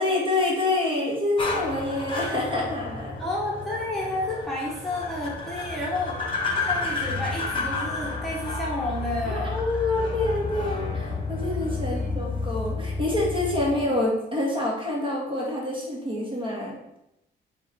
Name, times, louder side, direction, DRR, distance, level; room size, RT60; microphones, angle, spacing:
voice 1, 0.0-3.2 9.2-16.8, left 2 dB, 25° right, -3 dB, 2.2 m, -27 dB
sound 1, 1.4-13.8, left 3 dB, 25° left, 1.4 m, -31 dB
voice 2, 3.2-9.6 11.8-12.3 13.7-13.8, left 1 dB, ahead, -6 dB, 1.8 m, -31 dB
7.9 x 2.9 x 4.5 m, 0.84 s
cardioid pair, 90°, 20 cm